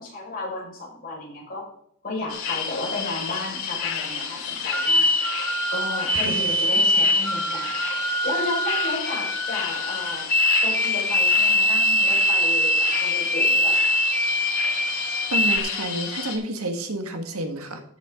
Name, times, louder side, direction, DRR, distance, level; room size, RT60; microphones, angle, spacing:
voice 1, 0.0-1.6 2.0-5.1 5.7-7.7 8.0-10.3 10.6-13.7, left 2 dB, 45° left, -4 dB, 5.4 m, -33 dB
sound 1, 2.3-16.4, left 6 dB, 75° left, 2.4 m, -31 dB
sound 2, 4.7-15.6, left 1 dB, 5° left, 0.5 m, -23 dB
voice 2, 15.3-17.8, right 1 dB, 85° right, 6 dB, 1.7 m, -29 dB
13.5 x 7.6 x 3.8 m, 0.69 s
head